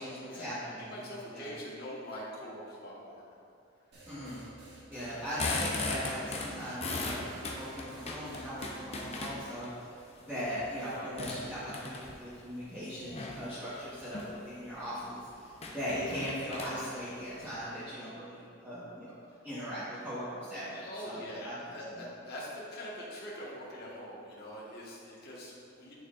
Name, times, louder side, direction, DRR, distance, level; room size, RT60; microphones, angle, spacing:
voice 1, 0.0-1.4 4.1-4.4 4.9-19.2 19.4-21.5 21.9-22.0, equal, 10° right, -14 dB, 1.4 m, -39 dB
voice 2, 0.8-3.2 20.6-25.9, equal, 50° left, -6 dB, 1.6 m, -43 dB
sound 1, 3.9-9.2, right 2 dB, 55° right, 1.6 m, -53 dB
sound 2, 5.1-9.7 10.2-12.3 13.0-13.5 14.0-14.3 14.7-14.8 15.0-15.1 15.5-17.5, left 3 dB, 30° left, 0.7 m, -37 dB
9.3 x 6.2 x 2.6 m, 2.5 s
head